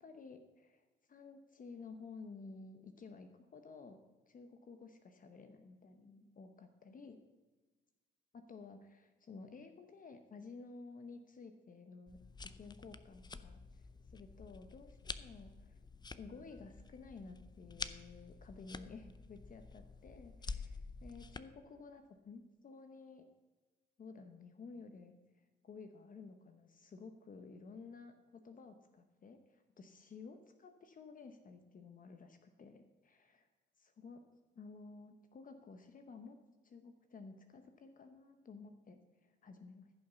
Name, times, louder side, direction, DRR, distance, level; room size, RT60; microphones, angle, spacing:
voice 1, 0.0-4.0 4.3-7.2 8.3-12.2 12.6-15.8 16.2-23.3 24.0-33.5 33.8-34.2 34.5-36.4 36.6-39.9, left 4 dB, 45° left, 7 dB, 0.9 m, -53 dB
sound 1, 12.1-21.4, left 4 dB, 20° left, 0.6 m, -49 dB
14.5 x 5.7 x 6.8 m, 1.2 s
cardioid pair, 90°, 20 cm